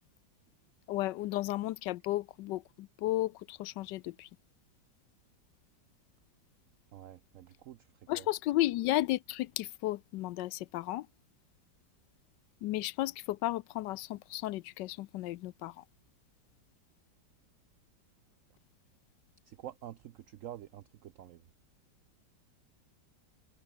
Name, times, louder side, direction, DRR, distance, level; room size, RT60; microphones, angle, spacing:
voice 1, 0.9-4.3 8.1-11.1 12.6-15.8, left 16 dB, 75° left, 1.2 m, -33 dB
voice 2, 6.9-8.3 19.4-21.4, right 12 dB, 90° right, 0.7 m, -48 dB
omnidirectional pair, 2.0 m